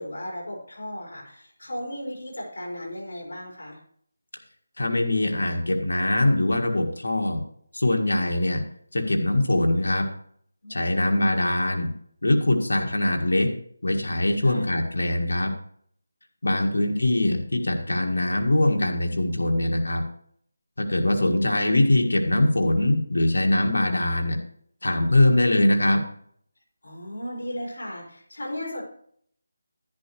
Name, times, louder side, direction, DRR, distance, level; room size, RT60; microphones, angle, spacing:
voice 1, 0.0-3.8 10.6-11.4 14.4-14.7 16.5-16.9 26.8-28.8, left 1 dB, 70° left, -2 dB, 4.8 m, -36 dB
voice 2, 4.8-7.4 7.7-8.6 8.9-10.1 10.7-11.9 12.2-13.5 13.8-15.5 16.4-20.0 20.8-24.4 24.8-26.0, left 1 dB, 90° left, 2 dB, 1.7 m, -22 dB
10.5 x 10.5 x 3.1 m, 0.63 s
figure-of-eight pair, 170°, 0 cm